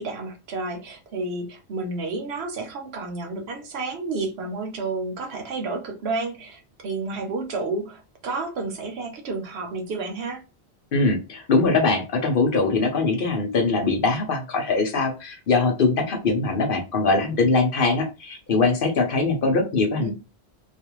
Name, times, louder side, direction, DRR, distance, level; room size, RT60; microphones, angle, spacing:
voice 1, 0.0-10.4 20.0-20.1, right 3 dB, 75° right, 0.9 m, -31 dB
voice 2, 10.9-20.1, left 3 dB, 60° left, 0.8 m, -22 dB
2.4 x 2.4 x 2.9 m
omnidirectional pair, 1.1 m